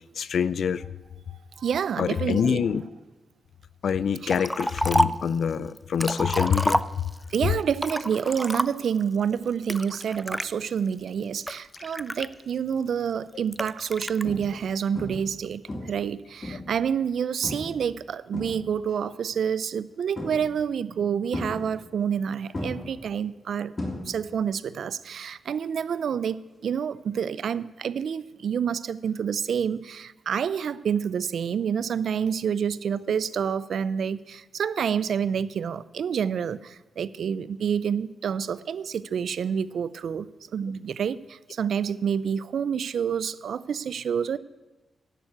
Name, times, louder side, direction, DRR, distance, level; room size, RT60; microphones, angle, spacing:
voice 1, 0.2-0.8 2.0-2.8 3.8-6.8, left 7 dB, 70° left, 18 dB, 0.4 m, -25 dB
voice 2, 1.6-2.7 4.2-4.3 7.3-23.7 24.1-44.4, right 7 dB, 75° right, 19 dB, 0.4 m, -28 dB
Liquid, 4.3-5.3 5.8-7.3 7.8-9.0 9.7-10.5 11.1-12.7 13.5-14.2, equal, ahead, 0.4 m, -28 dB
sound 1, 12.6-12.9 13.5-13.7 14.2-14.7 15.0-15.4 15.7-16.8 17.4-17.8 18.1-19.0 20.2-20.7 21.3-22.2 22.5-24.4 24.7-25.1 27.2-27.3, left 1 dB, 30° left, 3.3 m, -35 dB
11.0 x 7.2 x 8.2 m, 1.1 s
cardioid pair, 95°, 0 cm